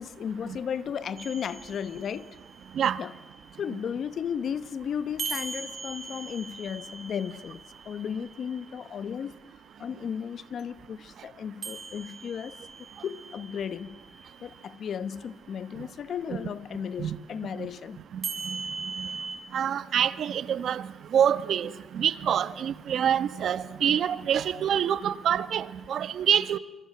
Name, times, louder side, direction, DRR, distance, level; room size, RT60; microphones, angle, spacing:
voice 1, 0.0-2.4 3.0-3.1 3.6-9.3 9.8-14.0 14.4-18.0, left 7 dB, 60° left, 1.0 m, -35 dB
sound 1, 1.2-4.1 5.2-9.3 11.6-14.7 18.2-19.4, right 4 dB, 45° right, 6.4 m, -40 dB
voice 2, 19.5-20.8 21.1-26.6, right 9 dB, 65° right, 1.1 m, -26 dB
27.0 x 22.5 x 7.8 m
cardioid pair, 90°, 0 cm